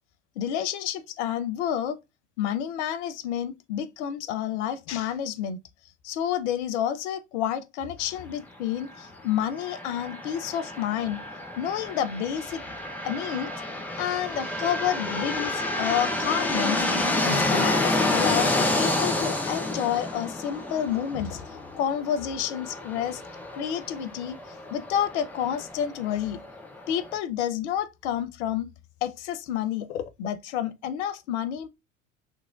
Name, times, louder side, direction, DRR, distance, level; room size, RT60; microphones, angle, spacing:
voice 1, 0.4-2.0 2.4-5.6 6.0-11.2 11.6-12.6 13.0-13.5 14.0-16.9 17.2-23.2 23.5-24.4 24.7-26.4 26.9-28.7 29.0-31.7, left 10 dB, 60° left, 0.5 m, -29 dB
sound 1, 9.5-27.1, left 2 dB, 5° left, 0.3 m, -29 dB
2.9 x 2.6 x 2.3 m
figure-of-eight pair, 75°, 40 cm